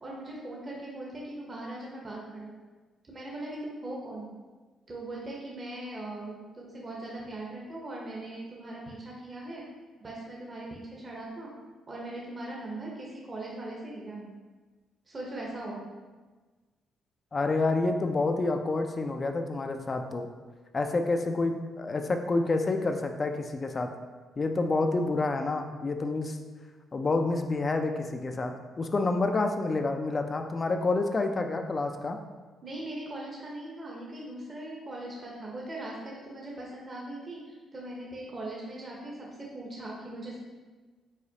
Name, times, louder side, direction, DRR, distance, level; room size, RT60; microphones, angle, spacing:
voice 1, 0.0-2.5 3.0-4.3 4.9-9.6 10.0-11.5 11.9-14.3 15.1-15.8 32.6-40.4, right 1 dB, 30° right, -3 dB, 0.8 m, -40 dB
voice 2, 17.3-20.3 20.7-23.9 24.4-26.4 26.9-32.2, left 3 dB, 35° left, 5 dB, 0.4 m, -28 dB
4.8 x 4.0 x 2.8 m, 1.3 s
cardioid pair, 90°, 0 cm